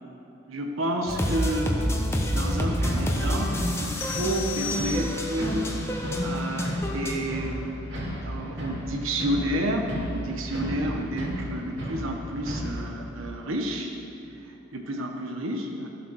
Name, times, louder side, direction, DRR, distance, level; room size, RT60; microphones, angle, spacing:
voice 1, 0.5-1.8 2.3-5.7 6.2-7.8 8.2-14.0 14.4-15.9, right 1 dB, 80° right, 2 dB, 1.1 m, -30 dB
sound 1, 1.1-7.2, equal, 10° left, 1.0 m, -28 dB
sound 2, 2.8-12.8, equal, 60° right, 3.0 m, -34 dB
sound 3, 4.0-5.5, left 5 dB, 55° left, 1.6 m, -35 dB
13.5 x 7.9 x 6.3 m, 2.9 s
head